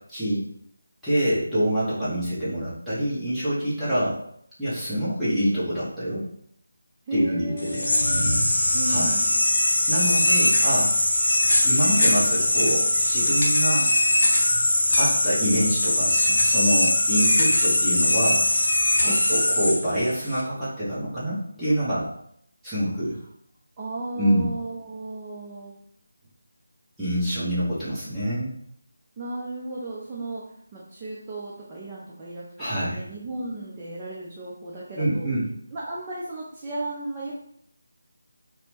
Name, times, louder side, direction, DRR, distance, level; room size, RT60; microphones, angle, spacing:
voice 1, 0.1-0.4 1.0-4.2 4.6-6.2 7.1-7.8 8.9-9.1 9.9-10.9 11.6-13.9 15.0-18.4 19.0-22.1 22.6-23.2 24.2-24.5 27.0-28.5 32.6-33.0 35.0-35.4, equal, ahead, -16 dB, 0.8 m, -26 dB
voice 2, 7.1-8.4 8.7-9.4 19.0-19.2 23.8-25.7 27.2-27.6 29.2-30.4 30.7-32.5 32.7-35.3 35.7-37.3, right 1 dB, 20° right, -6 dB, 0.4 m, -35 dB
sound 1, 7.6-20.4, left 1 dB, 45° left, 0.6 m, -21 dB
2.9 x 2.0 x 2.9 m, 0.70 s
figure-of-eight pair, 160°, 0 cm